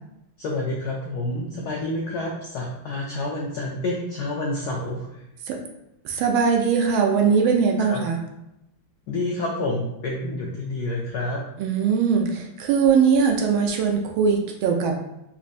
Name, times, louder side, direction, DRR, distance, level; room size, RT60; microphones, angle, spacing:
voice 1, 0.4-5.2 7.9-8.0 9.1-11.4, left 2 dB, 90° left, -2 dB, 0.8 m, -28 dB
voice 2, 6.0-8.2 11.6-15.0, right 6 dB, 75° right, 2 dB, 1.3 m, -21 dB
4.2 x 2.6 x 2.5 m, 0.88 s
omnidirectional pair, 2.4 m